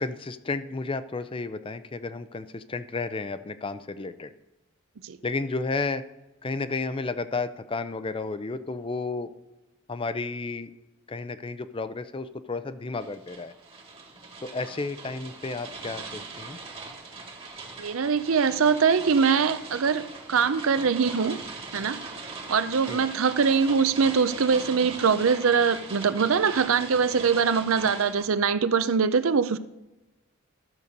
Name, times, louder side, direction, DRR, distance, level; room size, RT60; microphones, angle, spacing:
voice 1, 0.0-4.3 5.2-6.0 6.4-9.3 9.9-10.7 11.1-13.5 14.4-16.6 22.9-23.0, left 3 dB, 25° left, 12 dB, 0.5 m, -32 dB
sound 1, 13.0-28.2, right 3 dB, 30° right, 1.6 m, -40 dB
voice 2, 17.8-21.4 21.7-22.1 22.5-29.6, right 6 dB, 75° right, 13 dB, 0.6 m, -23 dB
12.5 x 6.7 x 5.3 m, 1.0 s
head